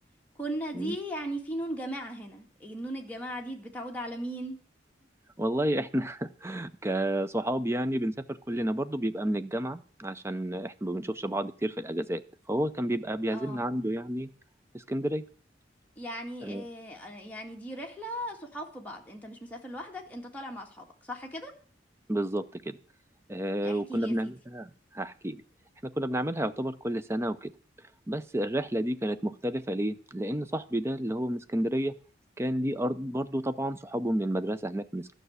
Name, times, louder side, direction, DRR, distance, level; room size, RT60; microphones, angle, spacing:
voice 1, 0.4-4.6 13.3-13.6 16.0-21.5 23.6-24.3, equal, 10° left, 0 dB, 2.0 m, -38 dB
voice 2, 5.4-12.2 12.5-14.3 14.9-15.2 16.4-16.7 22.1-22.8 23.3-24.7 24.9-25.4 25.8-27.5 28.1-31.9 32.4-35.1, right 1 dB, 15° right, 11 dB, 0.6 m, -30 dB
12.5 x 6.2 x 8.1 m, 0.42 s
head